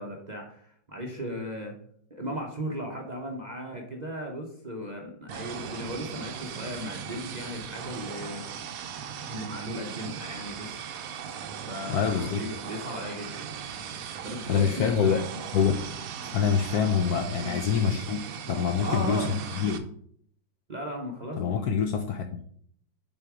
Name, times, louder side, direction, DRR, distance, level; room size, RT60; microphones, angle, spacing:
voice 1, 0.0-1.7 2.1-8.5 9.3-10.9 11.6-13.5 14.2-15.5 17.4-17.6 18.8-19.5 20.7-21.7, equal, 50° right, 0 dB, 0.5 m, -36 dB
sound 1, 5.3-19.8, right 7 dB, 65° right, 0.8 m, -38 dB
voice 2, 11.9-12.4 14.5-15.2 15.5-15.8 16.3-19.2 19.6-19.9 21.4-22.4, left 7 dB, 75° left, 6 dB, 0.9 m, -25 dB
6.4 x 4.3 x 4.8 m, 0.64 s
omnidirectional pair, 2.1 m